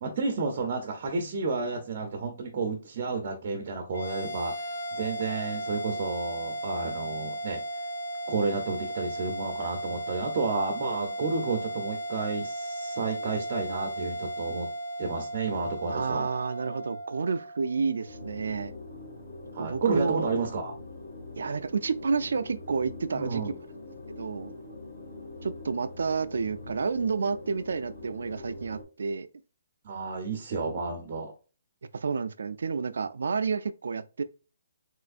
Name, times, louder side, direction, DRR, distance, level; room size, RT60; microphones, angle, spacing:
voice 1, 0.0-7.6 8.3-14.7 15.0-16.3 19.5-20.7 23.1-23.5 29.8-31.3, right 4 dB, 35° right, 0.6 m, -31 dB
sound 1, 3.9-18.5, right 1 dB, 80° left, 1.5 m, -36 dB
voice 2, 15.9-18.7 19.6-20.3 21.4-23.4 24.2-24.5 25.4-29.3 31.9-34.2, right 5 dB, 75° right, 0.3 m, -30 dB
sound 2, 18.0-28.8, left 2 dB, 50° left, 1.6 m, -43 dB
3.4 x 3.0 x 2.4 m
hypercardioid pair, 170°, 0 cm